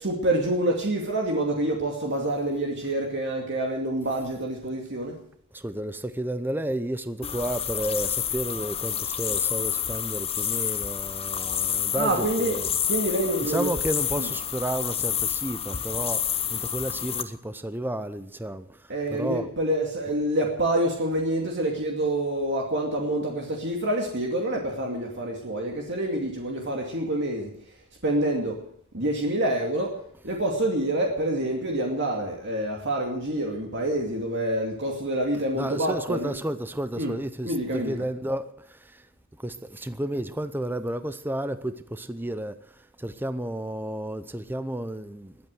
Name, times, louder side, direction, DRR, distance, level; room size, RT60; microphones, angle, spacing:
voice 1, 0.0-5.2 11.9-12.6 12.9-13.7 14.2-14.3 18.9-27.5 28.0-28.6 28.9-36.3 37.0-37.1 37.4-38.0, right 1 dB, 55° right, 2.4 m, -27 dB
voice 2, 5.5-12.7 13.4-19.5 35.6-39.1 39.4-45.4, right 1 dB, 10° right, 0.7 m, -32 dB
sound 1, 7.2-17.2, left 9 dB, 25° left, 1.0 m, -29 dB
21.0 x 8.5 x 7.7 m
head